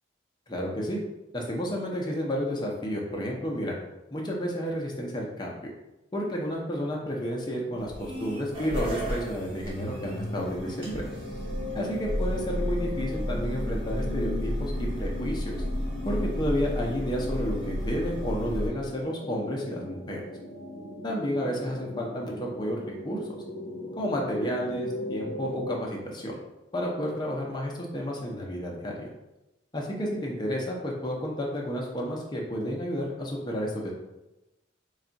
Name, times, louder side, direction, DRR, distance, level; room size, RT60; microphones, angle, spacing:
voice 1, 0.5-1.0 1.3-3.7 4.1-5.7 6.1-11.0 11.7-15.6 16.0-20.2 21.0-22.8 23.0-23.2 24.0-26.4 26.7-29.1 29.7-33.9, equal, 25° left, -2 dB, 0.6 m, -31 dB
sound 1, 7.5-25.7, left 2 dB, 80° left, 0.6 m, -40 dB
sound 2, 7.8-18.7, equal, 30° right, 0.9 m, -32 dB
3.4 x 2.3 x 3.9 m, 0.98 s
head